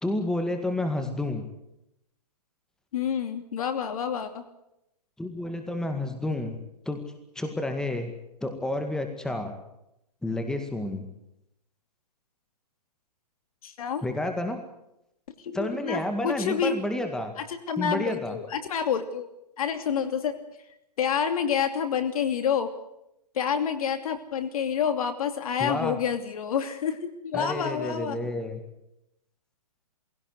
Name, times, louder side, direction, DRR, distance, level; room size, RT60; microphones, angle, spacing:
voice 1, 0.0-1.4 5.2-6.6 6.9-7.0 7.4-8.1 8.4-9.6 10.2-11.1 14.0-14.6 15.5-17.3 17.8-18.4 25.6-26.0 27.3-28.6, left 1 dB, 5° left, 6 dB, 2.0 m, -30 dB
voice 2, 2.9-4.4 13.6-14.0 15.4-16.8 17.7-19.3 19.6-20.3 21.0-22.7 23.3-28.2, left 7 dB, 60° left, 9 dB, 2.8 m, -28 dB
20.0 x 17.0 x 9.5 m, 0.84 s
hypercardioid pair, 140°, 20 cm